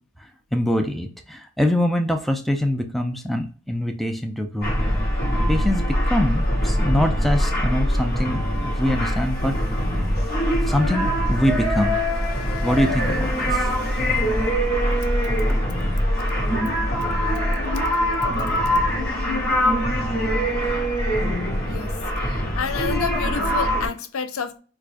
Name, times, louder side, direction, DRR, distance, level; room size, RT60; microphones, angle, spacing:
voice 1, 0.5-4.8 5.1-5.2 5.5-9.6 10.6-12.0 12.6-13.7 15.5-15.6, left 1 dB, ahead, 4 dB, 0.4 m, -24 dB
sound 1, 4.6-23.9, equal, 45° left, 1.1 m, -23 dB
voice 2, 22.2-24.6, left 6 dB, 85° left, 9 dB, 0.5 m, -29 dB
4.6 x 2.3 x 2.5 m, 0.39 s
head